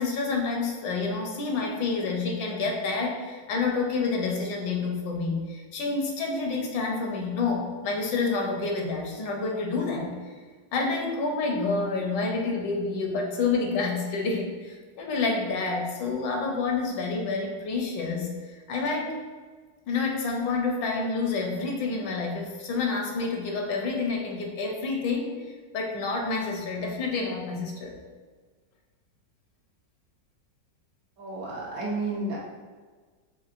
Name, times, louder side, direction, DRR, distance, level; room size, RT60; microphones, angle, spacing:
voice 1, 0.0-10.2 10.7-19.1 19.9-25.5 25.7-27.9, left 4 dB, 80° left, 1 dB, 1.3 m, -28 dB
voice 2, 31.2-32.4, right 2 dB, 60° right, -5 dB, 1.1 m, -31 dB
4.5 x 3.0 x 2.5 m, 1.5 s
omnidirectional pair, 2.0 m